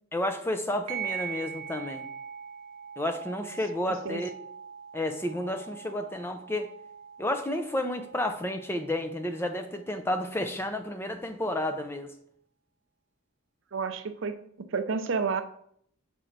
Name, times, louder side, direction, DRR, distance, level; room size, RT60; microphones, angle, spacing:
voice 1, 0.1-2.1 3.0-4.3 4.9-6.7 7.2-12.1, left 1 dB, 10° left, 6 dB, 0.4 m, -31 dB
sound 1, 0.9-9.9, right 7 dB, 90° right, 1.0 m, -42 dB
voice 2, 3.8-4.2 13.7-14.4 14.7-15.4, right 5 dB, 60° right, 10 dB, 0.5 m, -30 dB
6.3 x 4.4 x 3.9 m, 0.67 s
head